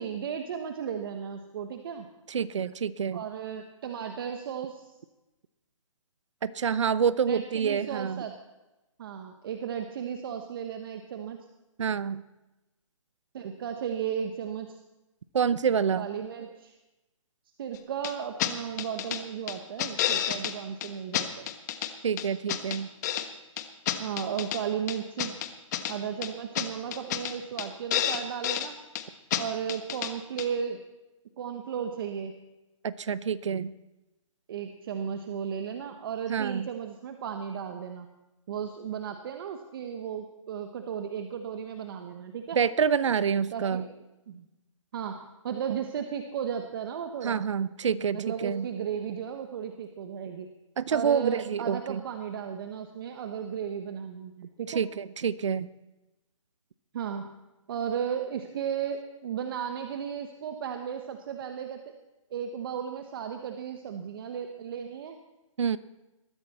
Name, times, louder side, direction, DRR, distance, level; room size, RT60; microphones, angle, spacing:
voice 1, 0.0-2.1 3.1-4.9 7.3-8.3 9.0-11.4 13.3-14.8 16.0-16.7 17.6-21.5 24.0-25.3 25.9-28.8 29.4-30.8 31.4-32.3 34.5-38.1 38.5-42.6 43.3-44.0 44.3-44.4 44.9-47.4 48.1-50.5 50.9-54.8 56.9-57.3 57.7-61.9 62.3-65.2, right 8 dB, 40° right, 6 dB, 1.3 m, -35 dB
voice 2, 2.3-3.2 6.4-8.2 11.8-12.2 15.3-16.1 22.0-22.9 32.8-33.7 36.3-36.7 42.6-43.8 47.2-48.7 50.8-52.0 54.7-55.7 65.6-65.8, right 7 dB, 60° right, 16 dB, 0.9 m, -27 dB
sound 1, 18.0-18.1 18.4-18.5 18.8-19.2 19.5-20.5 20.8-20.9 21.1-21.9 22.2-23.3 23.6-24.6 24.9-25.9 26.2-26.3 26.5-26.7 26.9-27.3 27.6-27.7 27.9-28.7 28.9-29.0 29.3-29.4 29.7-30.1 30.4-30.5, left 11 dB, 30° left, 1.3 m, -29 dB
21.0 x 14.0 x 4.3 m, 1.0 s
hypercardioid pair, 150°, 17 cm